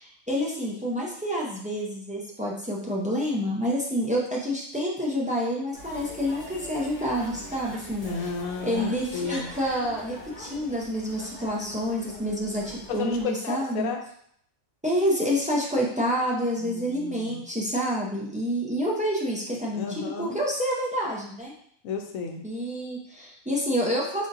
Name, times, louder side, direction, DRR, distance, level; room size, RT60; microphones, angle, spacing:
voice 1, 0.0-8.1 8.6-13.9 14.8-21.5 22.4-24.3, equal, 10° right, -4 dB, 0.3 m, -28 dB
sound 1, 5.7-13.2, equal, 35° left, 1.3 m, -43 dB
voice 2, 8.0-9.5 11.7-11.8 12.4-12.5 12.9-14.0 16.6-17.4 19.7-20.4 21.8-22.4, left 5 dB, 90° left, 4 dB, 1.0 m, -33 dB
3.9 x 3.5 x 2.6 m, 0.66 s
omnidirectional pair, 1.4 m